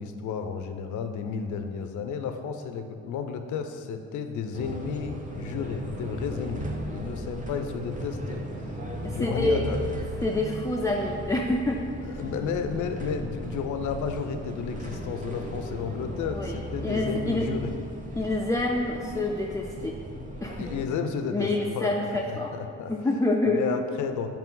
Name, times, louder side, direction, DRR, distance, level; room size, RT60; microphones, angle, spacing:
voice 1, 0.0-8.4 9.0-9.9 12.1-17.7 20.6-22.9 23.5-24.4, left 6 dB, 75° left, 7 dB, 0.6 m, -32 dB
sound 1, 4.5-20.8, equal, 25° right, 0.9 m, -36 dB
voice 2, 9.0-9.6 10.2-11.8 16.3-16.6 16.8-17.5 18.2-20.0 20.4-20.7 21.3-22.5 22.9-23.7, left 2 dB, 10° left, 0 dB, 0.4 m, -27 dB
5.9 x 4.3 x 3.8 m, 2.3 s
cardioid pair, 90°, 30 cm